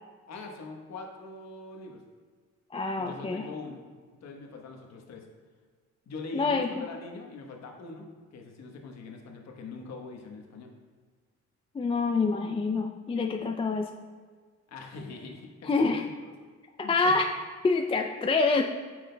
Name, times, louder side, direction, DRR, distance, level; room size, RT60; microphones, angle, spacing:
voice 1, 0.3-2.0 3.0-3.9 4.2-5.3 6.1-10.7 14.7-16.0 16.8-16.9, left 3 dB, 60° left, 2 dB, 1.1 m, -42 dB
voice 2, 2.7-3.5 6.3-6.9 11.7-13.9 15.6-16.0 16.9-17.3 17.6-18.6, left 4 dB, 20° left, 4 dB, 0.3 m, -26 dB
8.9 x 6.2 x 2.2 m, 1.5 s
cardioid pair, 90°, 30 cm